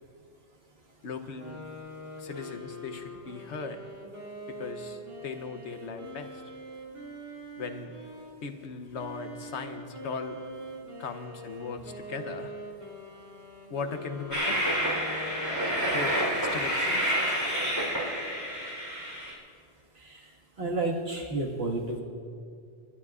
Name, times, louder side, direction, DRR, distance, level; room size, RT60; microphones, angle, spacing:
voice 1, 1.0-1.6 2.2-3.8 4.5-6.3 7.6-7.9 8.4-10.4 11.0-12.5 13.7-14.6 15.8-16.2 16.5-17.1, left 4 dB, 70° left, 7 dB, 1.1 m, -38 dB
sound 1, 1.3-8.4 8.9-16.1, equal, 35° right, 2.4 m, -43 dB
Train, 14.3-19.3, equal, 15° right, 3.7 m, -28 dB
voice 2, 20.6-22.0, right 2 dB, 60° right, -1 dB, 2.0 m, -31 dB
29.0 x 12.0 x 2.4 m, 2.3 s
omnidirectional pair, 1.2 m